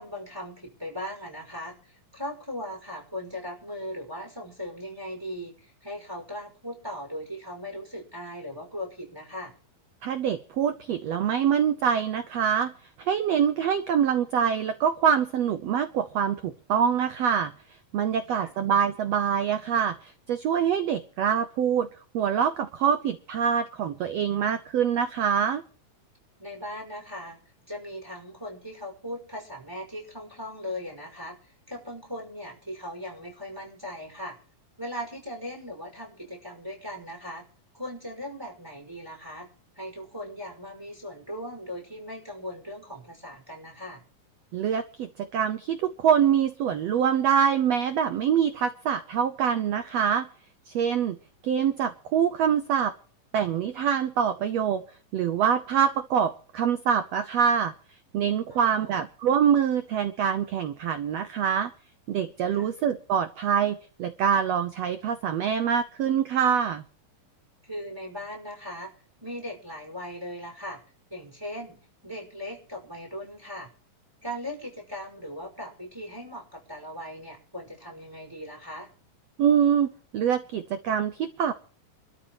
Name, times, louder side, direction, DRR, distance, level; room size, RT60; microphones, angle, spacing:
voice 1, 0.0-9.5 18.3-18.5 26.4-27.4 27.7-31.4 31.7-34.4 34.8-37.4 37.7-39.5 39.8-44.0 58.5-58.9 62.5-62.7 67.6-68.9 69.2-70.8 71.1-71.8 72.0-73.7 74.2-78.9, left 1 dB, 5° right, 0 dB, 5.6 m, -38 dB
voice 2, 10.0-12.7 13.0-17.5 17.9-21.9 22.1-25.6 44.5-50.3 50.7-51.2 51.4-52.9 53.3-54.8 55.1-57.7 58.1-61.7 62.1-66.8 79.4-81.5, right 8 dB, 85° right, 10 dB, 1.4 m, -25 dB
26.0 x 13.0 x 3.1 m, 0.41 s
omnidirectional pair, 4.1 m